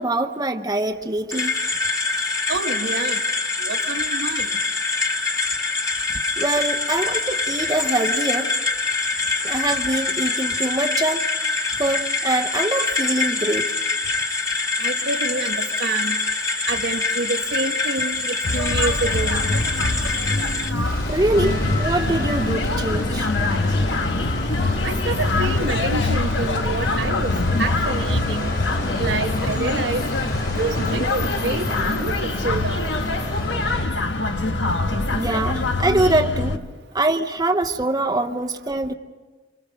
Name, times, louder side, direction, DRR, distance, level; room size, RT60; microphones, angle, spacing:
voice 1, 0.0-1.5 6.4-8.5 9.4-11.3 11.8-13.7 21.1-23.3 35.1-36.6 36.9-38.9, right 2 dB, 20° right, 4 dB, 0.8 m, -23 dB
sound 1, 1.3-20.7, left 3 dB, 20° left, 1.7 m, -24 dB
voice 2, 2.5-3.2 3.6-4.5 14.8-16.1 16.7-19.4 24.8-27.3 27.6-28.5 29.0-30.0 30.6-31.7 32.0-32.9, right 3 dB, 75° right, 5 dB, 1.3 m, -27 dB
sound 2, 18.4-36.6, left 2 dB, 90° left, 1.3 m, -24 dB
sound 3, 20.8-33.8, left 1 dB, 60° left, 5.3 m, -31 dB
26.0 x 25.0 x 6.4 m, 1.3 s
head